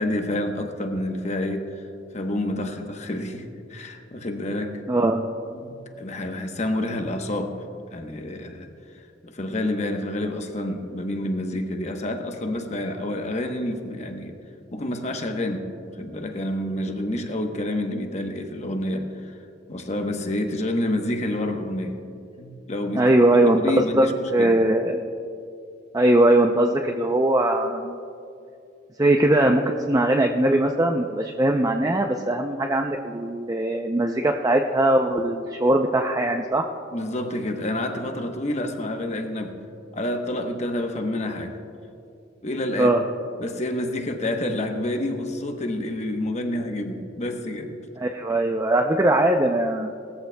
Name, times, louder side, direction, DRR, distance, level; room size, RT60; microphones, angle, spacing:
voice 1, 0.0-1.9 2.1-4.8 5.5-7.6 7.9-8.7 8.9-14.4 14.7-19.4 19.7-22.0 22.4-23.0 23.5-24.5 36.9-39.6 39.9-41.6 42.4-42.9 43.4-47.8, left 1 dB, 35° left, 4 dB, 1.0 m, -28 dB
voice 2, 4.9-5.3 22.9-24.0 24.3-25.0 25.9-28.0 29.0-36.6 42.8-43.0 48.0-49.9, right 1 dB, 20° right, 2 dB, 0.5 m, -20 dB
19.0 x 14.0 x 2.2 m, 2.5 s
head